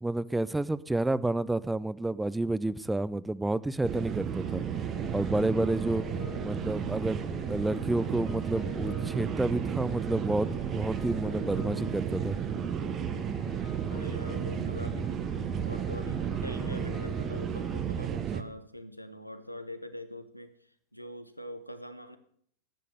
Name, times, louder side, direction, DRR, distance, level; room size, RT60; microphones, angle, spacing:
voice 1, 0.0-4.6 5.1-6.0 6.4-7.2 7.5-12.4, right 2 dB, 5° right, 19 dB, 0.4 m, -30 dB
sound 1, 3.8-18.4, right 8 dB, 30° right, 0.8 m, -33 dB
sound 2, 4.4-17.8, left 6 dB, 35° left, 1.7 m, -46 dB
voice 2, 13.9-15.3 15.6-22.2, left 1 dB, 90° left, 10 dB, 1.0 m, -44 dB
10.5 x 8.4 x 6.5 m, 0.63 s
figure-of-eight pair, 90°, 0 cm